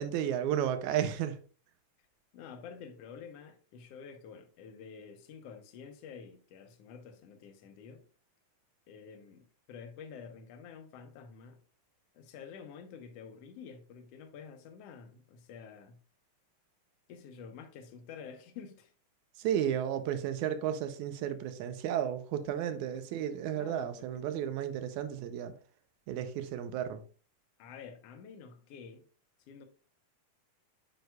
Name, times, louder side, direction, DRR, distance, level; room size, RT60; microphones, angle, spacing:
voice 1, 0.0-1.4 19.4-25.5 26.1-27.0, right 10 dB, 80° right, 2.0 m, -33 dB
voice 2, 2.3-8.0 8.9-11.6 12.1-16.0 17.1-18.9 22.9-23.0 23.6-24.1 27.6-29.0 29.4-29.6, left 6 dB, 70° left, 1.7 m, -49 dB
9.1 x 4.8 x 2.3 m
omnidirectional pair, 3.5 m